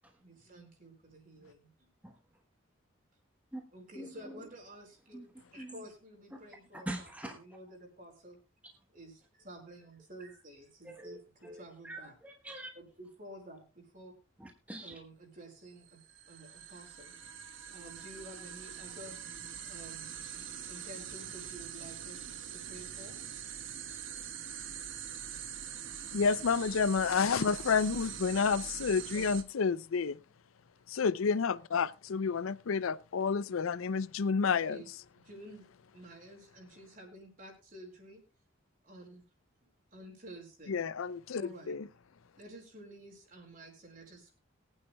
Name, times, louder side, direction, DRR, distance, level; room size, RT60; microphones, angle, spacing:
voice 1, 0.2-1.7 3.7-5.2 5.5-8.4 8.9-12.1 12.7-14.1 14.8-16.0 16.3-17.1 17.7-19.2 19.6-20.1 20.6-23.2 23.4-23.6 29.1-29.3 34.5-34.9 35.2-35.7 35.9-38.2 38.8-39.2 39.6-40.8 41.3-41.8 42.4-44.3, right 1 dB, 45° right, 4.7 m, -51 dB
voice 2, 4.0-4.4 5.1-5.3 5.6-5.8 6.7-7.3 10.8-11.2 11.4-12.7 14.4-15.0, right 1 dB, 5° right, 1.1 m, -43 dB
sound 1, 15.8-29.4, right 8 dB, 70° right, 1.2 m, -44 dB
voice 3, 26.1-30.2 30.9-34.8 40.7-41.9, left 5 dB, 85° left, 0.5 m, -30 dB
22.5 x 9.0 x 2.2 m
head